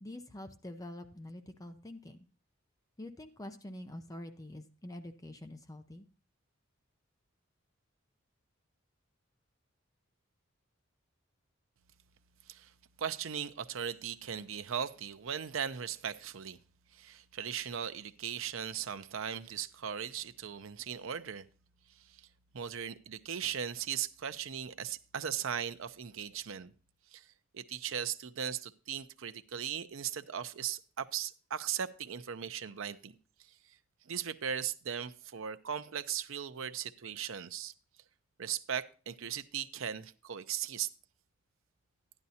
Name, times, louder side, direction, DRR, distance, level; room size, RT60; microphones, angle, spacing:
voice 1, 0.0-2.3 3.0-6.1, left 1 dB, 15° left, 0.6 m, -46 dB
voice 2, 13.0-16.6 16.9-21.5 21.9-22.3 22.5-26.7 27.1-27.3 27.5-33.8 34.0-37.7 38.4-40.9, right 8 dB, 75° right, 0.6 m, -38 dB
11.5 x 11.0 x 2.8 m
head